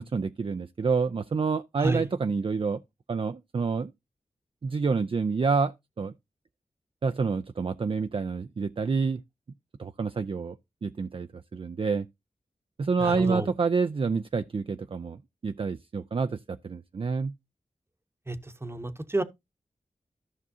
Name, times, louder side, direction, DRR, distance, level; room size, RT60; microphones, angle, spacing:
voice 1, 0.0-2.8 3.1-3.9 4.6-6.1 7.0-9.2 9.8-10.6 10.8-12.1 12.8-17.3, right 4 dB, 40° right, 0.4 m, -28 dB
voice 2, 13.0-13.5 18.3-19.2, right 2 dB, 20° right, 0.9 m, -30 dB
14.0 x 5.9 x 2.7 m
cardioid pair, 55°, 13 cm